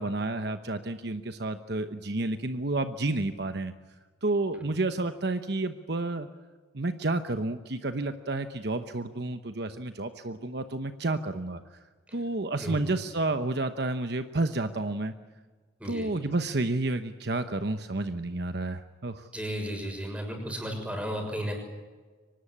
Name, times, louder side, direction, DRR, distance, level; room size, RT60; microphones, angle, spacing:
voice 1, 0.0-3.7 4.2-6.3 6.7-11.6 12.1-15.1 15.8-19.3, right 2 dB, 55° right, 9 dB, 1.0 m, -30 dB
voice 2, 19.3-21.6, equal, 5° right, 2 dB, 6.4 m, -34 dB
24.5 x 19.0 x 9.9 m, 1.4 s
head